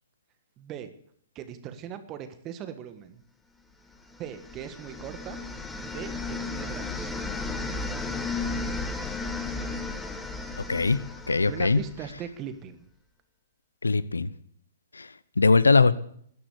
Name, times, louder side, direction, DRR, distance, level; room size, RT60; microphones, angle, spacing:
voice 1, 0.6-0.9 1.3-3.2 4.2-5.4 5.7-7.1 11.5-12.9, right 9 dB, 30° right, 10 dB, 1.5 m, -40 dB
sound 1, 4.1-12.1, left 3 dB, 5° left, 1.5 m, -34 dB
voice 2, 11.3-11.8 13.8-14.3 15.4-16.0, left 4 dB, 90° left, 18 dB, 0.8 m, -20 dB
14.0 x 10.5 x 8.2 m, 0.67 s
hypercardioid pair, 125°, 0 cm